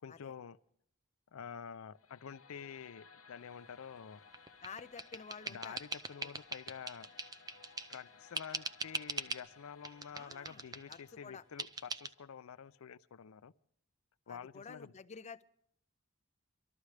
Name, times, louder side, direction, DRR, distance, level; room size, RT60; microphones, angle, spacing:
voice 1, 0.0-0.6 1.3-4.2 5.5-7.1 7.9-13.5 14.3-14.9, left 7 dB, 85° left, 0.5 m, -48 dB
sound 1, 1.9-13.0, left 5 dB, 70° left, 1.0 m, -61 dB
sound 2, 4.3-8.0 8.3-9.5 9.8-11.0 11.6-12.1, right 3 dB, 20° right, 0.6 m, -42 dB
voice 2, 4.6-5.8 6.2-6.3 10.1-11.4 14.3-15.4, left 5 dB, 35° left, 0.5 m, -50 dB
24.5 x 13.0 x 3.3 m
head